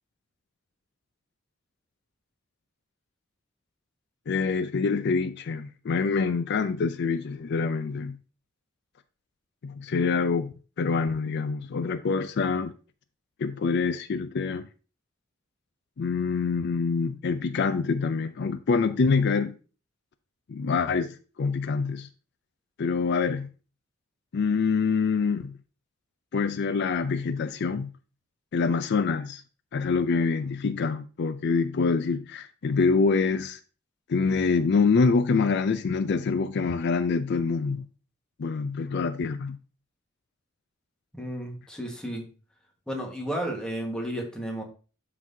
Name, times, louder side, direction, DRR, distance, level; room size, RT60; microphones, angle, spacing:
voice 1, 4.3-8.2 9.6-12.7 13.4-14.7 16.0-19.6 20.5-22.1 22.8-23.5 24.3-25.6 26.3-27.9 28.5-29.4 29.7-33.6 34.1-37.9 38.4-39.6, left 4 dB, 60° left, 0.4 m, -26 dB
voice 2, 41.1-42.3 42.9-44.6, right 1 dB, 5° left, 1.5 m, -33 dB
12.0 x 4.0 x 2.7 m
head